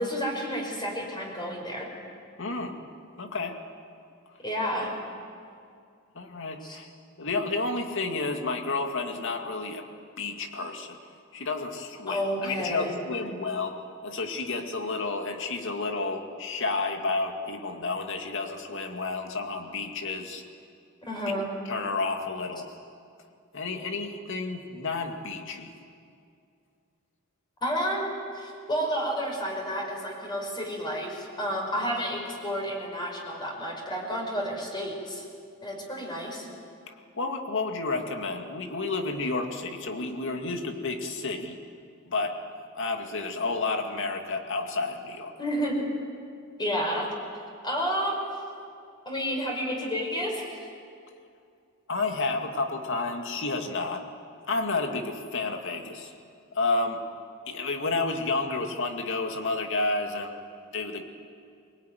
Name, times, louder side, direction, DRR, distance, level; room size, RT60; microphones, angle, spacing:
voice 1, 0.0-1.9 4.4-4.9 6.6-6.8 12.1-12.9 21.0-21.5 27.6-28.0 28.3-35.3 35.6-36.5 45.4-45.9 46.6-47.1 47.6-48.2 49.1-50.7, equal, 20° left, 0 dB, 5.4 m, -30 dB
voice 2, 2.4-2.8 3.2-3.6 6.1-6.9 7.2-9.8 10.2-11.0 11.3-20.4 21.7-22.7 23.5-25.7 36.9-41.6 42.1-42.4 42.7-45.3 51.9-54.0 54.5-56.1 56.5-57.1 57.5-60.4 60.7-61.0, left 3 dB, 60° left, 4 dB, 2.3 m, -31 dB
24.0 x 20.0 x 9.4 m, 2.4 s
head